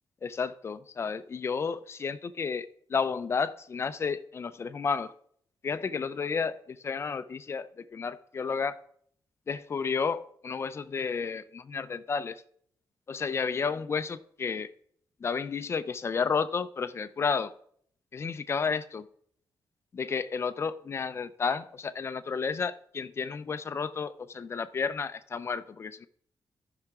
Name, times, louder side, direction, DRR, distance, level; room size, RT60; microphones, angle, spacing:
voice 1, 0.2-5.1 5.6-8.8 9.5-12.4 13.1-14.7 15.2-17.5 18.1-19.1 19.9-26.1, left 5 dB, 35° left, 0.5 m, -32 dB
14.5 x 5.8 x 3.6 m
wide cardioid pair, 150°, 8 cm